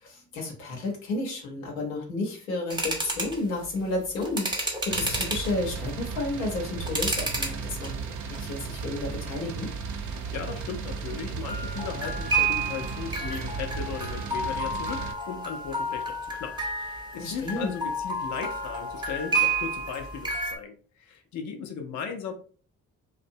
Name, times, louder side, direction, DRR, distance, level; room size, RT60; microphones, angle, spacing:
voice 1, 0.0-8.0 8.3-9.7 17.2-17.7, left 2 dB, 85° left, 0 dB, 0.8 m, -32 dB
sound 1, 2.7-3.4 4.2-5.5 6.2-7.6 7.8-8.4 8.8-9.0 11.5-20.6, right 2 dB, 10° right, 0.6 m, -30 dB
sound 2, 4.9-15.1, right 5 dB, 50° right, 0.5 m, -35 dB
voice 2, 10.0-22.3, left 6 dB, 45° left, 5 dB, 0.6 m, -37 dB
2.5 x 2.2 x 2.6 m, 0.41 s
hypercardioid pair, 45°, 39 cm